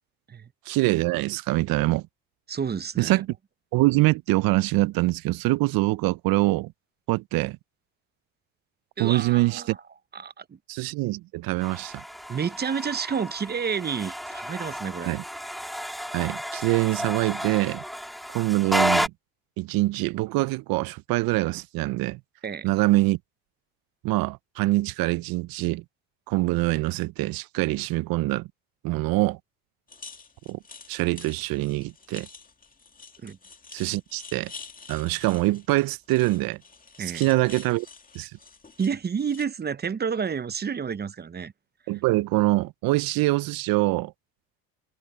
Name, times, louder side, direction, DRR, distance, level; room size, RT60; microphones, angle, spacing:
voice 1, 0.7-2.1 3.0-3.3 3.7-6.7 7.1-7.6 9.0-9.8 10.7-12.0 15.0-15.2 16.1-17.8 18.3-19.1 19.6-22.2 22.6-23.2 24.0-25.8 26.3-28.5 28.8-29.4 30.5-30.6 30.9-32.3 33.7-34.5 34.9-36.6 37.1-37.9 38.1-38.3 41.9-44.1, right 20 dB, 70° right, 0.7 m, -24 dB
voice 2, 2.5-3.2 9.0-9.8 10.1-10.6 12.3-15.2 22.4-22.7 33.2-33.4 37.0-37.3 38.8-41.5, right 6 dB, 25° right, 0.8 m, -30 dB
sound 1, 11.6-19.1, equal, ahead, 2.6 m, -31 dB
sound 2, 29.9-39.4, left 5 dB, 20° left, 2.3 m, -47 dB
supercardioid pair, 80°, 37 cm